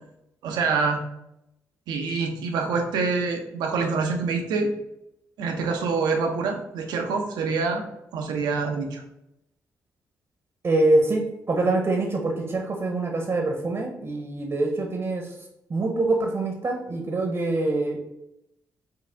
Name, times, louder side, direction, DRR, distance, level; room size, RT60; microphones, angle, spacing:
voice 1, 0.4-1.0 1.9-4.7 5.4-7.8 8.1-9.0, right 4 dB, 85° right, 3 dB, 0.6 m, -26 dB
voice 2, 10.6-15.4 15.7-18.0, right 2 dB, 45° right, 2 dB, 0.8 m, -24 dB
4.7 x 2.4 x 3.4 m, 0.84 s
supercardioid pair, 50°, 7 cm